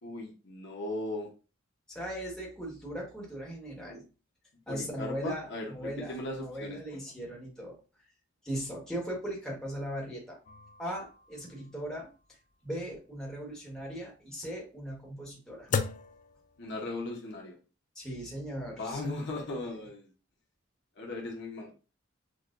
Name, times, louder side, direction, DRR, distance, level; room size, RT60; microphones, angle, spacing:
voice 1, 0.0-1.3 4.7-7.0 16.6-17.6 18.8-20.1 21.0-21.7, left 2 dB, 55° left, -1 dB, 0.9 m, -38 dB
voice 2, 1.9-4.0 4.7-7.8 8.4-10.4 10.8-12.1 12.6-15.7 17.9-19.8, equal, 5° left, -4 dB, 1.3 m, -39 dB
sound 1, 10.5-17.1, left 6 dB, 40° left, 0.3 m, -39 dB
6.3 x 2.3 x 2.5 m, 0.34 s
head